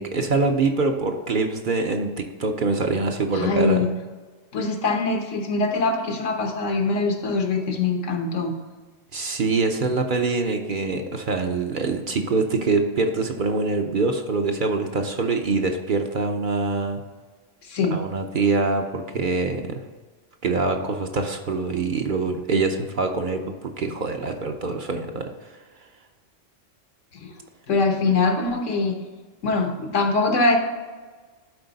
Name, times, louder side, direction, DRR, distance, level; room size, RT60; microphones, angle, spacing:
voice 1, 0.0-3.8 9.1-17.0 17.9-19.8 20.4-25.6, right 3 dB, 50° right, 4 dB, 0.7 m, -24 dB
voice 2, 3.3-3.9 4.5-8.5 17.6-17.9 27.1-27.4 27.7-28.9 29.4-30.6, left 3 dB, 85° left, 3 dB, 1.4 m, -23 dB
11.5 x 4.3 x 4.0 m, 1.4 s
omnidirectional pair, 1.2 m